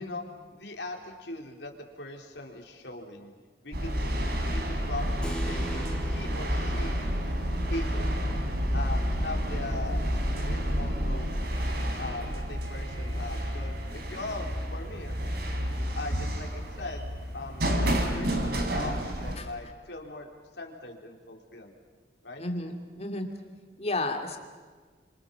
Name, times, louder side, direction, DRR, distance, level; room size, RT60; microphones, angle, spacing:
voice 1, 0.0-3.3 3.6-4.1 4.5-7.0 7.7-8.2 8.7-11.3 12.0-15.1 16.0-17.1 17.3-21.7 22.2-22.4, left 2 dB, 75° left, 2 dB, 3.9 m, -40 dB
sound 1, 3.7-19.3, equal, 65° right, 4.0 m, -30 dB
Keyboard (musical), 5.2-11.2, equal, 5° left, 2.0 m, -46 dB
voice 2, 22.4-23.3 23.8-24.4, left 2 dB, 40° left, 4 dB, 2.8 m, -32 dB
29.0 x 26.0 x 7.2 m, 1.4 s
head